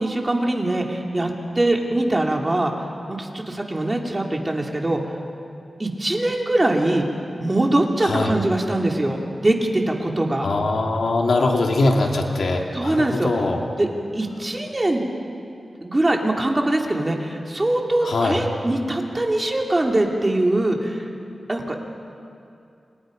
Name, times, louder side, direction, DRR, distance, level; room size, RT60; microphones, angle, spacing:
voice 1, 0.0-5.0 5.8-7.1 7.4-10.5 12.7-13.3 13.8-13.9 14.1-15.0 15.8-21.1 21.5-21.9, right 1 dB, 25° right, 1 dB, 2.9 m, -22 dB
voice 2, 8.0-8.3 10.4-13.7 18.0-18.4, left 2 dB, 75° left, 1 dB, 2.8 m, -22 dB
29.5 x 27.0 x 5.3 m, 2.5 s
wide cardioid pair, 95°, 0 cm